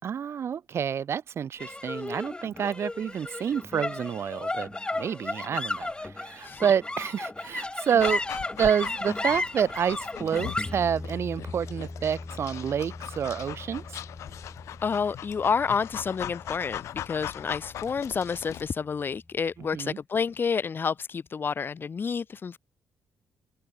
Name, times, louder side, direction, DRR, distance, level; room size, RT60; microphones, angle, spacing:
voice 1, 0.0-4.7 4.9-8.2 8.5-13.8 19.7-20.0, right 8 dB, 60° right, 2.9 m, -28 dB
sound 1, 1.6-18.1, left 2 dB, 20° left, 2.9 m, -36 dB
Dog, 8.0-18.7, left 11 dB, 75° left, 2.1 m, -40 dB
voice 2, 14.8-22.6, left 6 dB, 45° left, 1.2 m, -29 dB
supercardioid pair, 65°, 5 cm